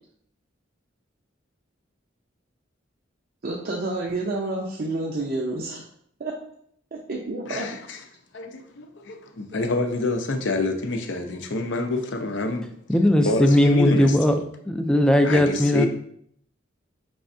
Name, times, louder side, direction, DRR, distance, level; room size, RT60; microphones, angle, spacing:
voice 1, 3.4-5.8 6.2-6.3 7.1-7.7, right 2 dB, 50° right, -2 dB, 0.6 m, -29 dB
voice 2, 7.5-8.0 8.3-12.7 13.2-14.4 15.2-15.9, left 2 dB, 65° left, 5 dB, 0.6 m, -27 dB
voice 3, 12.9-14.3 14.7-15.9, left 1 dB, 5° left, 6 dB, 0.3 m, -18 dB
5.1 x 3.4 x 2.6 m, 0.67 s
head